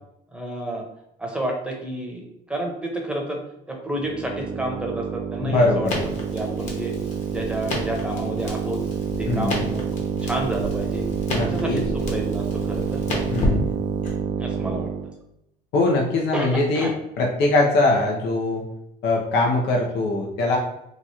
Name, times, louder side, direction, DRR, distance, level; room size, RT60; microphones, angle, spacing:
voice 1, 0.3-0.8 1.2-3.4 3.7-5.9 6.3-6.9 7.3-8.8 9.2-11.0 11.4-13.0 14.4-14.9 16.3-16.9, right 1 dB, 5° right, 0 dB, 0.8 m, -30 dB
sound 1, 4.0-15.1, right 7 dB, 50° right, 0.4 m, -28 dB
voice 2, 5.4-6.0 9.3-9.7 11.3-11.8 13.3-13.6 15.7-16.9 17.2-18.6 19.0-20.6, left 2 dB, 85° left, -1 dB, 0.8 m, -22 dB
Crackle, 5.8-14.1, left 1 dB, 45° left, 1.2 m, -32 dB
3.1 x 2.4 x 4.2 m, 0.81 s
cardioid pair, 110°, 17 cm